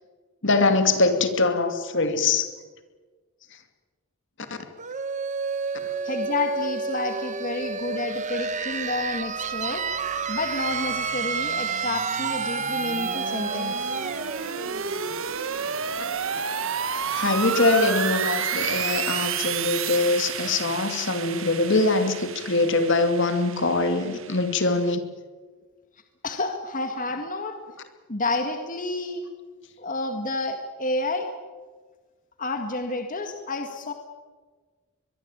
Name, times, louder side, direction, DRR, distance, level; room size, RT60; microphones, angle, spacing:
voice 1, 0.4-2.5 4.5-4.6 16.0-16.1 17.1-25.0, left 3 dB, 60° left, 8 dB, 2.5 m, -23 dB
sound 1, 4.8-16.3, right 5 dB, 35° right, 1.3 m, -30 dB
voice 2, 6.0-9.9 10.3-13.9 26.2-27.6 28.1-29.2 29.8-31.3 32.4-33.9, left 2 dB, 40° left, 5 dB, 2.0 m, -30 dB
sound 2, 8.9-25.0, right 7 dB, 65° right, 1.4 m, -32 dB
23.0 x 22.5 x 9.0 m, 1.4 s
head